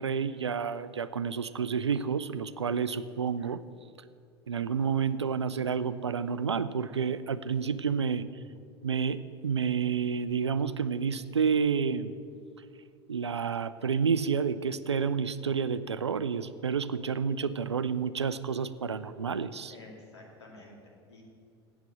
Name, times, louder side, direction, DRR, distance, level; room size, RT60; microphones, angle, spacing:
voice 1, 0.0-3.6 4.5-8.2 8.8-12.1 13.1-19.7, right 6 dB, 80° right, 15 dB, 0.4 m, -30 dB
voice 2, 19.7-21.2, left 2 dB, 75° left, -1 dB, 2.5 m, -51 dB
8.2 x 8.2 x 8.8 m, 2.3 s
figure-of-eight pair, 75°, 14 cm